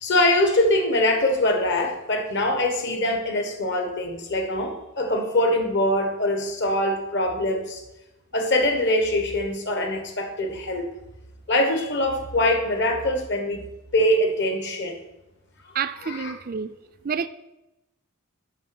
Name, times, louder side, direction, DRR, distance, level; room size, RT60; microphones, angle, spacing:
voice 1, 0.0-7.8 8.3-10.9 11.5-13.6 13.9-15.0 16.1-16.3, left 1 dB, 55° left, 1.4 m, -23 dB
voice 2, 15.7-16.7 17.0-17.3, right 6 dB, 40° right, 0.4 m, -28 dB
7.4 x 6.2 x 6.0 m
head